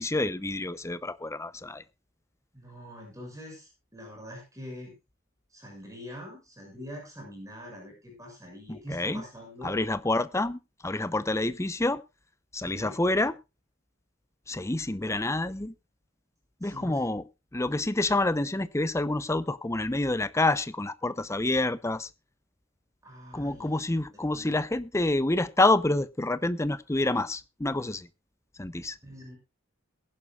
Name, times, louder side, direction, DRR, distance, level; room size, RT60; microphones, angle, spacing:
voice 1, 0.0-1.8 8.7-9.2 9.6-12.0 12.5-13.3 14.5-15.7 16.6-17.2 17.5-22.1 23.3-28.1 28.6-29.0, left 2 dB, 15° left, 0.7 m, -28 dB
voice 2, 2.5-4.9 5.5-9.8 12.6-12.9 16.6-17.1 23.0-23.9 24.3-24.6 29.0-29.4, equal, 15° right, 6.4 m, -44 dB
22.0 x 11.0 x 2.4 m
head